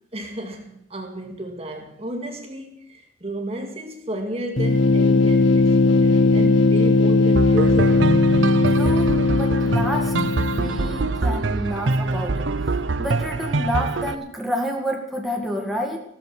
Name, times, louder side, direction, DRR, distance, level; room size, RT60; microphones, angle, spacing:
voice 1, 0.1-8.1, right 1 dB, 30° right, 2.0 m, -32 dB
sound 1, 4.6-11.2, left 3 dB, 75° left, 1.1 m, -18 dB
sound 2, 7.3-14.1, right 3 dB, 75° right, 0.8 m, -24 dB
voice 2, 8.6-12.5 13.0-16.0, equal, ahead, 2.1 m, -29 dB
15.0 x 13.5 x 6.2 m
head